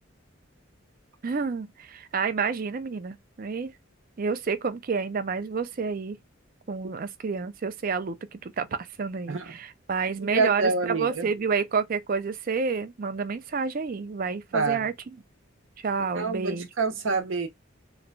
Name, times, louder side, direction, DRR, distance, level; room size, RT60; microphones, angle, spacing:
voice 1, 1.2-3.7 4.2-6.2 6.7-8.7 9.0-15.1 15.8-16.7, right 5 dB, 45° right, 0.4 m, -29 dB
voice 2, 10.2-11.3 14.5-14.9 16.0-17.5, right 4 dB, 70° right, 0.8 m, -27 dB
3.0 x 2.2 x 3.8 m
head